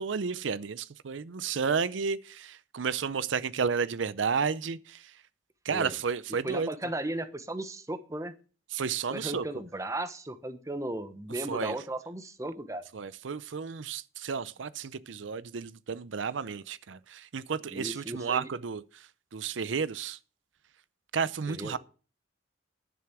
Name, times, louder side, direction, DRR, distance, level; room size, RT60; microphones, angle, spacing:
voice 1, 0.0-5.1 5.6-6.7 8.7-9.4 11.5-11.8 12.9-19.0 19.3-20.2 21.1-21.8, right 6 dB, 80° right, 0.6 m, -32 dB
voice 2, 6.3-8.3 9.1-12.8 17.7-18.5 21.5-21.8, right 1 dB, 15° right, 1.0 m, -36 dB
11.0 x 7.1 x 6.0 m
head